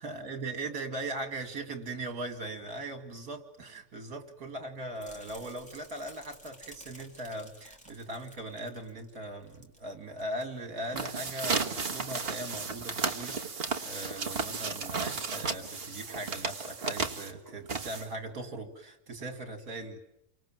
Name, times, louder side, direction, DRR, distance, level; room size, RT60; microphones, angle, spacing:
voice 1, 0.0-20.0, right 2 dB, 65° right, 6 dB, 3.1 m, -39 dB
sound 1, 5.0-9.8 10.1-10.4 10.9-11.0, equal, 5° left, 3.7 m, -53 dB
sound 2, 10.8-18.3, right 4 dB, 40° right, 1.6 m, -34 dB
29.0 x 25.0 x 7.6 m, 0.81 s
omnidirectional pair, 1.7 m